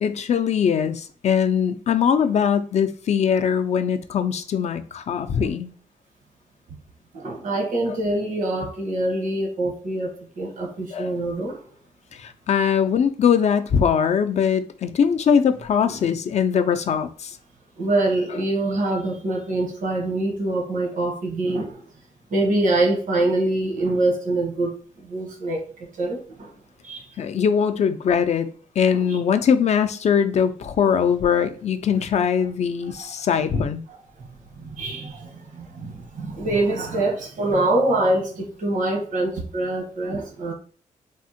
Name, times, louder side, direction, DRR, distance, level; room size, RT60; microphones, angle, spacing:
voice 1, 0.0-5.7 10.9-11.1 12.1-17.4 27.2-28.5 28.8-33.8, left 7 dB, 55° left, 0.4 m, -21 dB
voice 2, 7.1-11.6 17.8-21.9 22.3-24.7 25.0-25.6 26.0-26.5 26.8-27.1 29.1-29.2 34.5-40.5, right 2 dB, 70° right, 1.0 m, -24 dB
3.4 x 2.1 x 2.7 m
cardioid pair, 95°, 14 cm